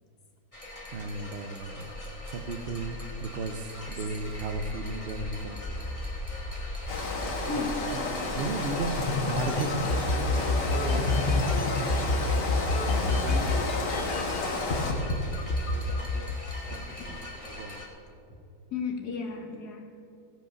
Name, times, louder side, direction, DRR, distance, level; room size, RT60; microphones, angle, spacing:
sound 1, 0.5-17.9, left 1 dB, 20° left, 1.5 m, -40 dB
voice 1, 0.9-1.9 2.3-5.9 7.9-8.1 8.3-11.9 12.6-14.4 15.6-16.4 16.7-17.8, right 3 dB, 55° right, 9 dB, 0.7 m, -37 dB
Rain, 6.9-14.9, left 3 dB, 90° left, 2.2 m, -32 dB
voice 2, 7.5-8.4 8.8-9.5 9.8-10.0 17.0-17.2 18.7-19.9, left 4 dB, 70° left, 2 dB, 1.9 m, -37 dB
sound 2, 9.0-14.4 14.7-15.1 15.5-16.9, left 3 dB, 45° left, 1.0 m, -27 dB
16.0 x 5.5 x 6.9 m, 2.6 s
omnidirectional pair, 1.8 m